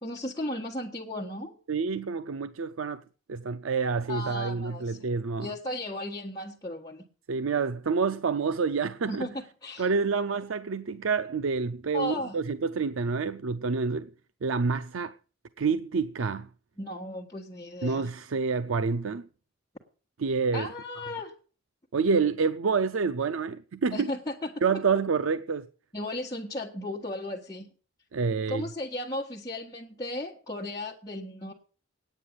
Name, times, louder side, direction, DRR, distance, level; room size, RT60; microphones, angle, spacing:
voice 1, 0.0-1.6 4.1-5.0 5.4-7.0 9.1-9.9 11.9-12.4 16.8-18.1 20.5-21.3 23.9-24.5 25.9-27.7 28.5-31.5, left 1 dB, 20° left, 1.5 m, -35 dB
voice 2, 1.7-3.0 3.3-5.5 7.3-9.3 9.8-14.1 14.4-15.1 15.6-16.5 17.8-19.2 20.2-20.7 21.9-24.1 24.6-25.7 28.1-28.7, right 5 dB, 85° right, 0.5 m, -28 dB
9.5 x 9.3 x 8.4 m
head